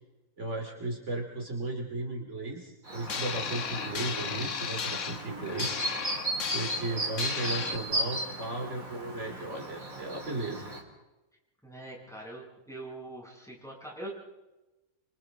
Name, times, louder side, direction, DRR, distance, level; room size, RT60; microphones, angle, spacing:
voice 1, 0.4-5.8 6.5-10.7, right 2 dB, 55° right, 1 dB, 3.1 m, -35 dB
Chirp tweet, 2.8-10.8, right 1 dB, 70° right, 4.1 m, -36 dB
sound 1, 3.1-7.8, left 7 dB, 60° left, 1.4 m, -35 dB
voice 2, 11.6-14.1, right 1 dB, ahead, -4 dB, 7.7 m, -43 dB
28.0 x 26.5 x 3.8 m, 1.0 s
omnidirectional pair, 1.5 m